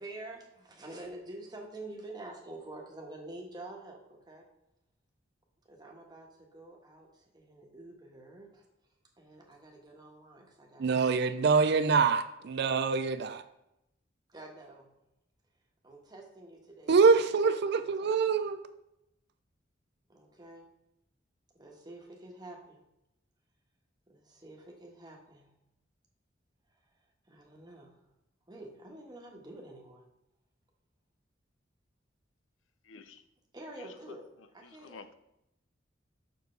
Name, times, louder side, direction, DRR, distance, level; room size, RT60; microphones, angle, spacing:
voice 1, 0.0-4.4 5.6-8.6 9.2-10.9 14.3-14.9 15.8-17.2 17.8-18.1 20.1-20.6 21.5-22.8 24.1-25.5 26.7-28.0 28.5-30.0 33.5-34.2 34.5-35.0, right 2 dB, 20° right, 1.4 m, -48 dB
voice 2, 10.8-13.4 16.9-18.7, right 5 dB, 60° right, 0.4 m, -25 dB
voice 3, 32.8-33.2 33.8-34.2 34.6-35.2, left 4 dB, 90° left, 0.6 m, -50 dB
6.8 x 6.5 x 3.3 m
head